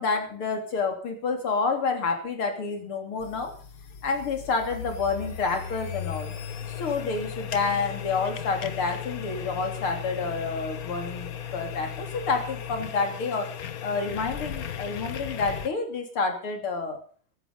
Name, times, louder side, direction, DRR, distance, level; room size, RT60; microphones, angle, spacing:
voice 1, 0.0-3.5 4.0-6.3 6.8-13.5 13.8-17.0, left 4 dB, 85° left, 4 dB, 3.9 m, -29 dB
sound 1, 3.2-15.7, left 9 dB, 50° left, 1.3 m, -36 dB
14.5 x 13.5 x 5.5 m, 0.43 s
omnidirectional pair, 2.3 m